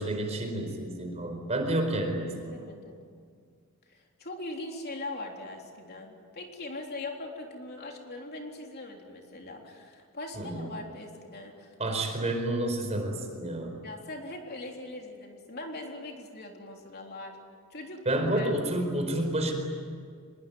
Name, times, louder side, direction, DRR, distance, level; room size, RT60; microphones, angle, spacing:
voice 1, 0.0-2.6 10.3-10.7 11.8-13.7 18.0-19.5, right 1 dB, 30° right, 4 dB, 4.6 m, -30 dB
voice 2, 2.5-3.1 3.9-12.0 13.8-17.4 17.7-18.5, left 2 dB, 45° left, 1 dB, 3.6 m, -41 dB
25.0 x 22.0 x 9.5 m, 2.1 s
head